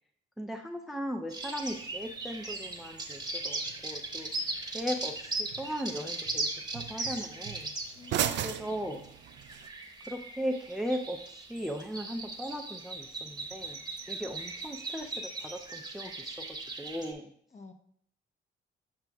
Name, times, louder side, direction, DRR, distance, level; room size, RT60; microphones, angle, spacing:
voice 1, 0.4-4.3 4.7-7.7 8.4-9.0 10.1-16.5 16.8-17.3, equal, ahead, 4 dB, 0.4 m, -37 dB
sound 1, 1.3-17.1, right 2 dB, 20° right, 0.9 m, -39 dB
sound 2, 1.7-9.7, right 10 dB, 65° right, 0.4 m, -40 dB
voice 2, 7.9-8.9 17.5-17.7, left 5 dB, 35° left, 5 dB, 0.8 m, -51 dB
7.6 x 5.8 x 2.3 m, 0.65 s
cardioid pair, 90°, 20 cm